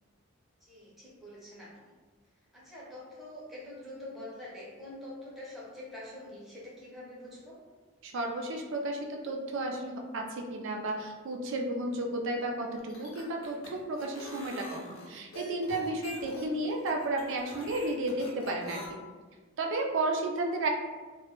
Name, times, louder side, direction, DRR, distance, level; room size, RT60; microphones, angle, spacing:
voice 1, 0.6-1.9 2.5-7.6, left 1 dB, ahead, -7 dB, 0.6 m, -45 dB
voice 2, 8.0-19.0 19.6-20.7, right 2 dB, 55° right, 2 dB, 0.3 m, -33 dB
sound 1, 12.8-18.9, left 1 dB, 65° left, 0.5 m, -45 dB
2.1 x 2.0 x 2.9 m, 1.3 s
head